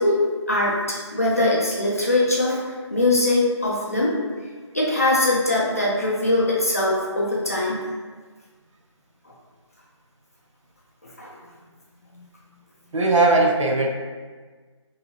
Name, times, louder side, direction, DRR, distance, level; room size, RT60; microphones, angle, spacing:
voice 1, 0.0-4.2 4.7-7.9 11.2-11.3 12.1-12.2, left 2 dB, 30° left, -5 dB, 0.4 m, -22 dB
voice 2, 12.9-13.9, right 2 dB, 80° right, 1 dB, 0.5 m, -18 dB
2.7 x 2.5 x 2.7 m, 1.4 s
figure-of-eight pair, 170°, 16 cm